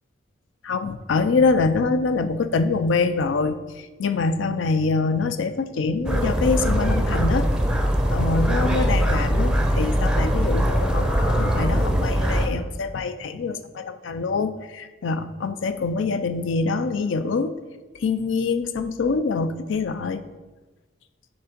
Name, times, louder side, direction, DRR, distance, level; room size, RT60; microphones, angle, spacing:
voice 1, 0.6-7.5 8.1-17.5 18.0-20.2, left 4 dB, 85° left, 11 dB, 0.4 m, -25 dB
sound 1, 6.0-12.5, equal, 5° right, 0.5 m, -21 dB
7.1 x 3.7 x 5.1 m, 1.2 s
head